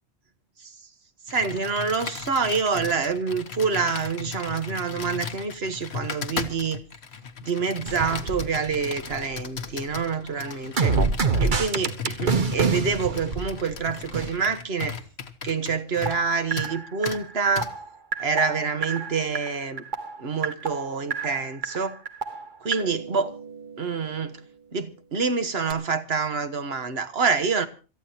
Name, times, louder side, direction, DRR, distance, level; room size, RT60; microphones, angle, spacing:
Computer keyboard, 1.3-16.3 16.6-16.7 17.0-17.2 17.6-17.7, left 6 dB, 70° left, 1.3 m, -37 dB
voice 1, 1.3-6.8 7.4-11.0 11.4-15.0 15.4-17.7 18.2-19.8 20.2-22.0 22.6-23.3 23.8-24.4 24.7-27.7, right 5 dB, 65° right, 1.5 m, -27 dB
sound 1, 7.8-9.4 9.7-14.3 16.0-23.9 25.7-25.8, right 4 dB, 50° right, 1.1 m, -28 dB
26.5 x 14.0 x 2.8 m
omnidirectional pair, 1.1 m